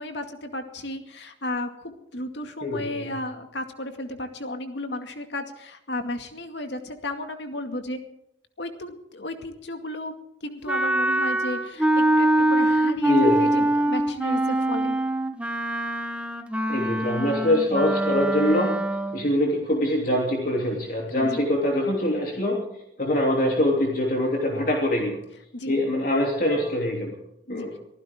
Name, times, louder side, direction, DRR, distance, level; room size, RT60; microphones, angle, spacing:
voice 1, 0.0-8.0 8.6-10.1 10.4-11.9 12.2-15.0 21.1-21.4 25.5-25.8 27.5-27.7, left 1 dB, 75° left, 6 dB, 2.2 m, -33 dB
voice 2, 2.6-3.2 13.0-13.7 16.7-18.7 19.1-22.6 23.0-25.2 25.7-27.1 27.5-27.7, left 1 dB, 50° left, -1 dB, 3.1 m, -24 dB
Wind instrument woodwind instrument, 10.7-19.3, right 1 dB, 5° right, 1.0 m, -24 dB
24.5 x 15.5 x 3.7 m, 0.78 s
head